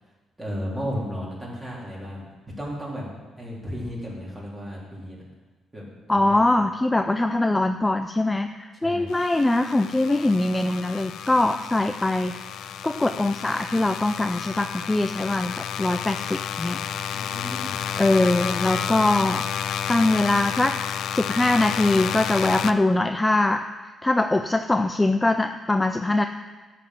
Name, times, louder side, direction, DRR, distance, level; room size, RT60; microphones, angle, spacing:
voice 1, 0.4-2.2 2.6-3.1 3.4-5.2 5.7-5.8 6.1-6.4 8.8-9.1 17.1-17.8, equal, 15° right, -5 dB, 3.4 m, -34 dB
voice 2, 6.1-12.4 12.8-16.8 18.0-19.5 19.9-20.8 21.1-26.2, left 2 dB, 10° left, 7 dB, 0.4 m, -22 dB
sound 1, 9.1-22.7, left 9 dB, 80° left, 0.4 m, -31 dB
11.5 x 5.9 x 7.6 m, 1.3 s
cardioid pair, 135°, 0 cm